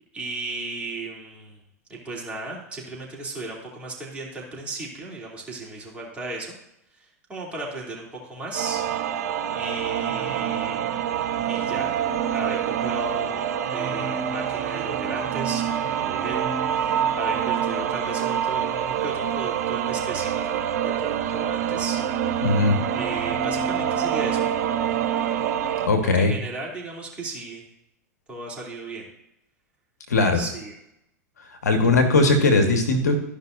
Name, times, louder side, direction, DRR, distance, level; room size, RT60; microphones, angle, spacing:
voice 1, 0.1-1.6 1.9-6.5 6.9-9.2 9.5-11.1 11.5-11.9 12.3-22.5 23.0-24.5 26.0-27.6 28.3-29.1 30.3-30.7, right 2 dB, 15° right, -4 dB, 3.1 m, -36 dB
sound 1, 8.5-25.9, right 9 dB, 70° right, 0.9 m, -26 dB
voice 2, 22.4-22.8 25.8-26.3 30.1-30.4 31.6-33.2, left 3 dB, 90° left, 4 dB, 1.5 m, -19 dB
14.0 x 5.5 x 2.6 m, 0.82 s
hypercardioid pair, 100°, 9 cm